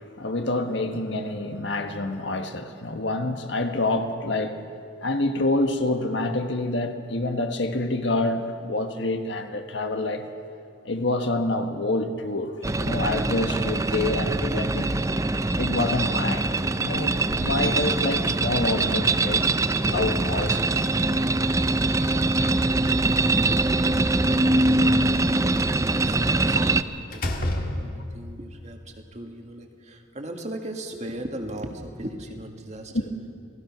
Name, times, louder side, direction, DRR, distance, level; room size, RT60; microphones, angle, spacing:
voice 1, 0.0-4.6 5.0-10.2 10.8-15.0 15.6-19.5 19.8-20.9 21.4-22.1 22.4-22.5 32.9-33.1, left 2 dB, 65° left, 1.5 m, -27 dB
sound 1, 12.6-26.8, right 2 dB, 15° right, 0.5 m, -23 dB
voice 2, 22.1-22.6 25.8-33.1, right 1 dB, 35° right, 1.9 m, -38 dB
Slam, 23.3-24.3 26.4-26.7 27.1-28.3, left 1 dB, 45° left, 1.9 m, -30 dB
28.5 x 18.5 x 6.1 m
head